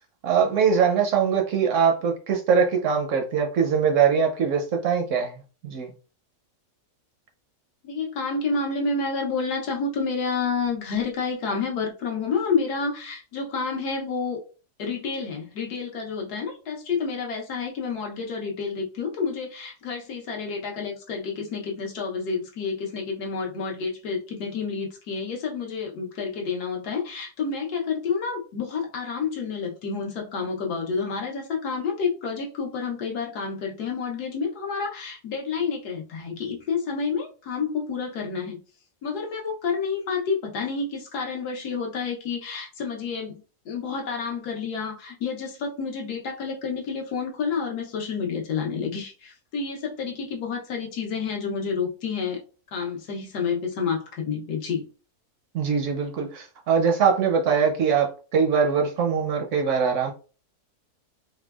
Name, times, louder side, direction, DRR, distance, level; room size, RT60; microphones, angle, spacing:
voice 1, 0.2-5.9 55.5-60.1, right 6 dB, 70° right, 0.8 m, -22 dB
voice 2, 7.8-14.4 14.8-38.6 39.0-43.4 43.7-52.4 52.7-54.9, left 5 dB, 85° left, 1.4 m, -29 dB
4.2 x 2.2 x 2.3 m
omnidirectional pair, 1.6 m